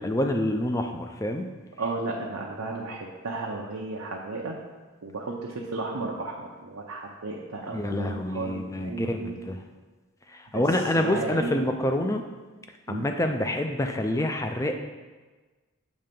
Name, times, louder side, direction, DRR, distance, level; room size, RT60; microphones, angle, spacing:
voice 1, 0.0-1.5 7.7-9.6 10.3-12.2 12.9-14.7, left 1 dB, 15° left, 5 dB, 0.4 m, -27 dB
voice 2, 1.8-4.6 5.0-9.5 10.5-10.6 11.0-11.6 12.9-13.1, right 3 dB, 85° right, -2 dB, 0.7 m, -34 dB
7.1 x 3.3 x 5.2 m, 1.3 s
head